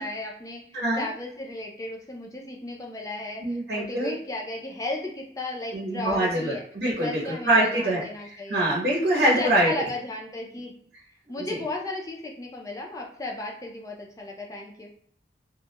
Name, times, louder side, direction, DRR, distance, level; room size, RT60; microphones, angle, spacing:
voice 1, 0.0-0.6 0.9-6.6 7.0-8.7 9.2-10.7 11.3-14.9, left 2 dB, 20° left, 0 dB, 0.4 m, -35 dB
voice 2, 0.7-1.1 3.4-4.1 5.7-8.0 8.5-9.7, right 1 dB, 65° right, -6 dB, 0.7 m, -24 dB
2.2 x 2.1 x 2.8 m, 0.63 s
head